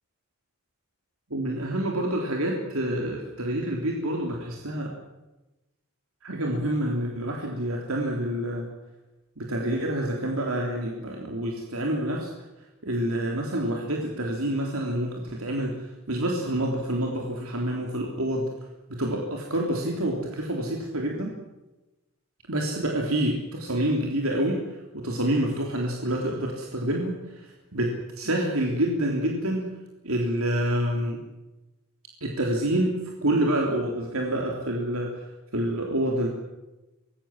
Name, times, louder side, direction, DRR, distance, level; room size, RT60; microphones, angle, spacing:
voice 1, 1.3-5.0 6.2-8.7 9.4-12.3 12.8-18.5 18.9-21.4 22.5-29.7 30.0-31.2 32.2-35.3 35.5-36.3, right 1 dB, 75° right, 0 dB, 3.6 m, -27 dB
25.0 x 21.0 x 7.6 m, 1.0 s
head